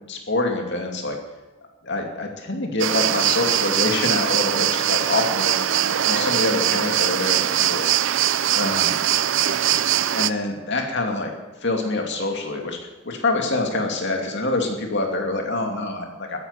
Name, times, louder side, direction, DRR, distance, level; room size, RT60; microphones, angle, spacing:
voice 1, 0.1-1.2 1.8-5.6 6.0-7.8 8.5-9.0 10.1-11.3 11.6-16.4, left 2 dB, 50° left, 2 dB, 2.7 m, -25 dB
sound 1, 2.8-10.3, right 10 dB, 55° right, 0.5 m, -21 dB
13.0 x 10.5 x 7.4 m, 1.1 s
head